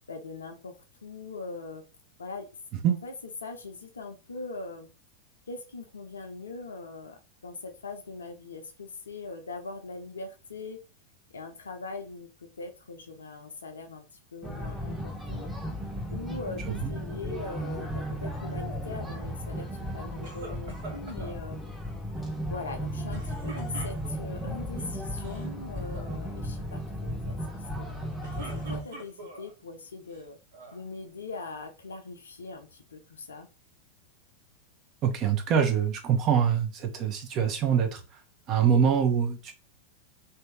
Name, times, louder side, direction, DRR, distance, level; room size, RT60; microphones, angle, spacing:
voice 1, 0.1-1.8 2.2-2.5 3.0-3.1 3.4-4.9 5.5-10.8 11.3-15.5 16.1-19.7 19.9-21.6 22.5-27.4 27.8-30.4 30.7-33.5, left 3 dB, 70° left, 5 dB, 0.7 m, -41 dB
sound 1, 14.4-28.8, equal, 5° right, 0.9 m, -35 dB
sound 2, 20.2-21.4 23.1-24.4 25.1-25.5 25.8-26.2 28.0-29.5 30.1-30.8, right 3 dB, 60° right, 1.1 m, -45 dB
voice 2, 35.0-38.2 38.5-39.5, right 8 dB, 35° right, 5 dB, 0.8 m, -24 dB
3.0 x 2.8 x 3.5 m, 0.33 s
figure-of-eight pair, 90°, 0 cm